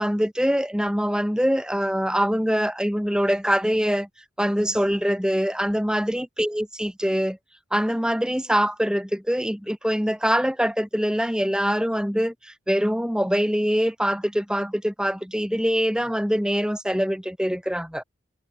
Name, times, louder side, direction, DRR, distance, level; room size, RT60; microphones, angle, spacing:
voice 1, 0.0-4.1 4.4-7.4 7.7-18.0, equal, 5° right, 6.8 m, -24 dB
head